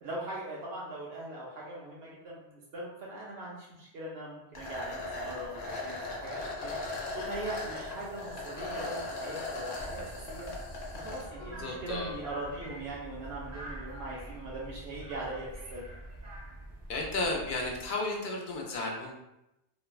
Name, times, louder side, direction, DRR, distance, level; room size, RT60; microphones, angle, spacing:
voice 1, 0.0-6.7 7.1-10.5 10.9-15.9, right 2 dB, 85° right, -4 dB, 0.8 m, -40 dB
sound 1, 4.5-11.2, left 2 dB, 85° left, 0.9 m, -38 dB
sound 2, 9.8-17.9, right 1 dB, 20° right, 0.6 m, -45 dB
voice 2, 11.4-12.1 16.9-19.1, left 2 dB, 60° left, -1 dB, 0.6 m, -33 dB
3.1 x 2.1 x 2.3 m, 0.88 s
omnidirectional pair, 1.0 m